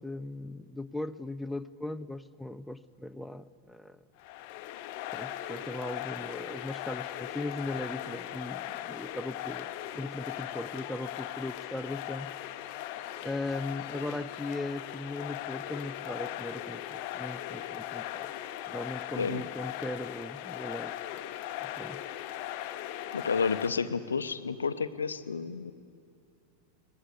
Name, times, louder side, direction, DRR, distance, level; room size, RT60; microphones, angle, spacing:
voice 1, 0.0-4.0 5.1-12.3 13.2-18.3 18.7-21.0 21.6-22.0, left 2 dB, ahead, 11 dB, 0.5 m, -38 dB
sound 1, 4.2-23.7, left 13 dB, 45° left, 0.9 m, -39 dB
voice 2, 23.1-25.7, left 5 dB, 70° left, 13 dB, 0.8 m, -31 dB
22.5 x 18.5 x 8.1 m, 2.4 s
figure-of-eight pair, 90°, 0 cm